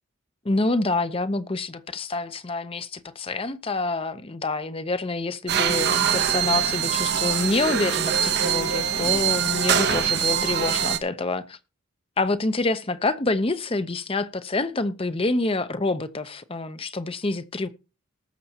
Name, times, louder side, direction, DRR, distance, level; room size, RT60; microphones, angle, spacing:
voice 1, 0.4-11.6 12.2-17.7, left 2 dB, 25° left, 0.7 m, -27 dB
sound 1, 5.5-11.0, right 8 dB, 50° right, 0.8 m, -23 dB
19.5 x 6.6 x 2.8 m
head